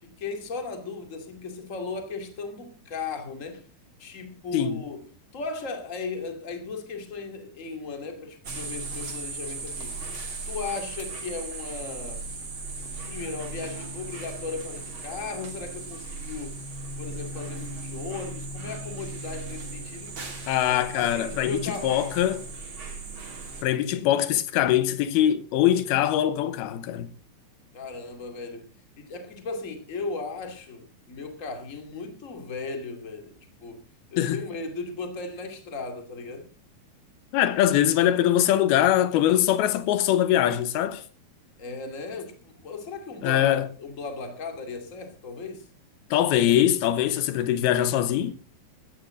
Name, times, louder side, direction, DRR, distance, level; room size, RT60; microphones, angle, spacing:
voice 1, 0.0-3.7 4.0-10.0 10.5-12.2 13.1-16.6 17.0-20.2 20.9-22.0 27.7-28.7 29.0-33.8 34.1-36.5 41.6-45.7, left 4 dB, 25° left, 2.1 m, -36 dB
sound 1, 8.4-23.6, right 3 dB, 35° right, 3.3 m, -37 dB
voice 2, 20.5-22.4 23.6-27.1 34.2-34.4 37.3-41.0 43.2-43.6 46.1-48.4, left 11 dB, 85° left, 2.8 m, -22 dB
16.5 x 14.0 x 3.8 m
omnidirectional pair, 4.5 m